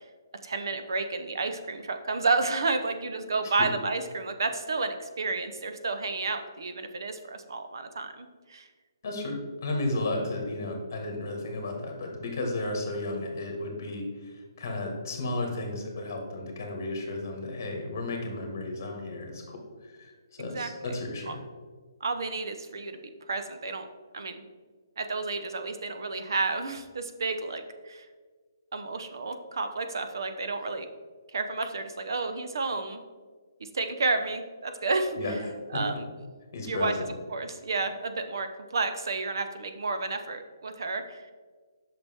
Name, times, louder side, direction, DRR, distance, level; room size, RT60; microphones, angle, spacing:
voice 1, 0.4-8.7 20.4-21.0 21.3-21.4 22.0-23.0 23.3-23.9 24.1-24.4 25.0-28.1 28.7-30.9 31.3-33.0 33.7-35.2 35.7-36.0 36.7-36.9 37.3-41.2, right 3 dB, 65° right, 8 dB, 0.8 m, -31 dB
voice 2, 9.0-21.4 35.2-35.8 36.5-37.0, left 2 dB, 35° left, 2 dB, 1.8 m, -33 dB
8.1 x 5.9 x 3.6 m, 1.5 s
hypercardioid pair, 175°, 2 cm